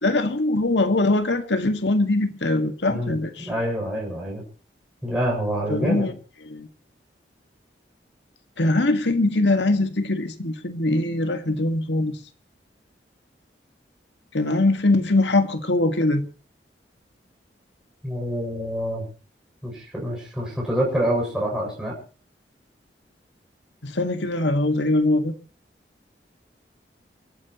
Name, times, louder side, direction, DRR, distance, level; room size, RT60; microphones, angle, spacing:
voice 1, 0.0-3.5 5.7-6.1 6.4-6.7 8.6-12.2 14.3-16.3 23.8-25.3, left 2 dB, 85° left, 7 dB, 2.0 m, -22 dB
voice 2, 2.9-4.4 5.0-6.1 18.0-19.1 19.6-22.0, equal, 5° right, -4 dB, 7.3 m, -26 dB
29.0 x 13.5 x 3.1 m, 0.39 s
head